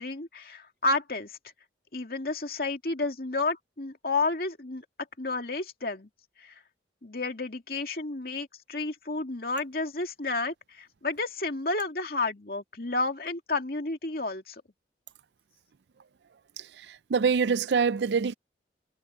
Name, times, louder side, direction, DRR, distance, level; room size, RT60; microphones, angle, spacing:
voice 1, 0.0-1.4 1.9-4.8 5.2-6.1 6.4-6.5 7.0-14.6, left 3 dB, 55° left, 2.5 m, -31 dB
voice 2, 16.6-18.3, right 6 dB, 75° right, 0.5 m, -26 dB
head